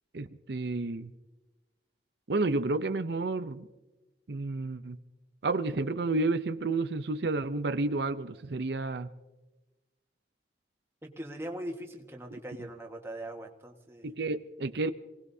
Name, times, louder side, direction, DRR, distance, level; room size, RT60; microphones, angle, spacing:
voice 1, 0.1-1.1 2.3-3.7 4.3-5.0 5.4-9.1 14.0-14.9, right 3 dB, 70° right, 0.6 m, -31 dB
voice 2, 11.0-14.1, right 1 dB, 15° right, 1.5 m, -41 dB
26.5 x 18.5 x 2.8 m
head